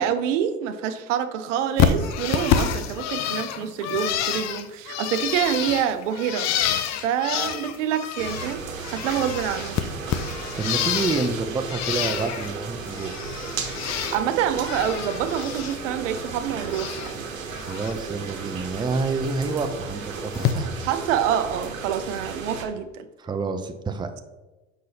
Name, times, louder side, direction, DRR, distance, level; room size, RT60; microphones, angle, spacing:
voice 1, 0.0-8.6 8.9-9.8 13.9-17.2 20.9-23.1, right 9 dB, 75° right, 10 dB, 0.6 m, -27 dB
Bird, 1.8-8.6 8.8-11.3 11.7-12.5 12.9-14.2 14.5-15.8 16.1-17.1 17.5-17.9 19.2-19.3 20.3-20.5, left 9 dB, 45° left, 0.6 m, -28 dB
sound 1, 8.2-22.6, right 4 dB, 90° right, 0.9 m, -34 dB
voice 2, 10.6-13.3 17.6-20.8 23.2-24.1, right 4 dB, 10° right, 7 dB, 0.5 m, -28 dB
6.2 x 5.7 x 2.7 m, 1.1 s
hypercardioid pair, 70°, 39 cm